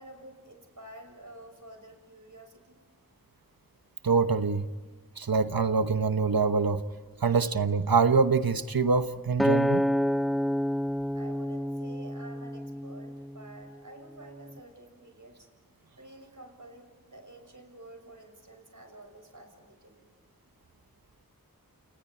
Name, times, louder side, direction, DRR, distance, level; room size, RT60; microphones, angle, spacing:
voice 1, 0.0-2.8 11.1-15.5 16.0-20.1, right 1 dB, 60° right, 6.1 m, -50 dB
voice 2, 4.0-4.7 5.2-6.8 7.2-9.8, right 4 dB, 90° right, 1.1 m, -25 dB
Acoustic guitar, 9.4-13.7 14.3-14.6, equal, ahead, 0.6 m, -29 dB
29.5 x 28.5 x 4.5 m
wide cardioid pair, 40°, 35 cm